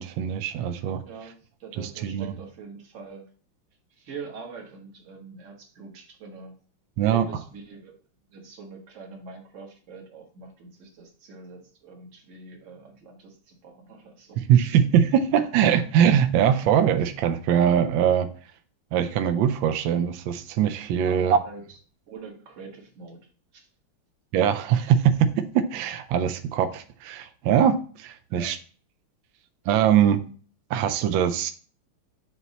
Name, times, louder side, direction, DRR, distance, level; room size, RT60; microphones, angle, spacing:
voice 1, 0.0-1.0 1.8-2.3 7.0-7.3 14.4-18.3 18.9-21.4 24.3-28.6 29.7-30.2 30.7-31.5, right 9 dB, 75° right, 9 dB, 1.2 m, -22 dB
voice 2, 0.6-3.3 3.9-6.5 7.1-8.0 8.3-14.8 21.0-21.8 22.1-23.7 28.3-28.6, right 4 dB, 40° right, 1 dB, 1.4 m, -44 dB
8.0 x 2.9 x 4.0 m, 0.41 s
omnidirectional pair, 2.4 m